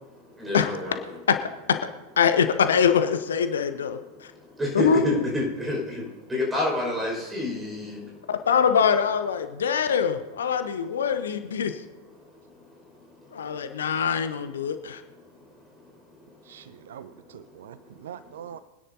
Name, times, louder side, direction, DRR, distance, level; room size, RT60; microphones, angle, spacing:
voice 1, 0.4-1.0 4.6-6.0 6.3-8.0, left 1 dB, 10° right, -1 dB, 5.2 m, -28 dB
voice 2, 1.3-1.9 2.2-4.3 4.7-5.2 8.3-11.8 13.3-15.0, left 7 dB, 65° left, 9 dB, 0.7 m, -24 dB
voice 3, 16.4-18.6, right 9 dB, 60° right, 15 dB, 0.3 m, -43 dB
25.0 x 10.0 x 2.7 m, 1.1 s
figure-of-eight pair, 90°, 0 cm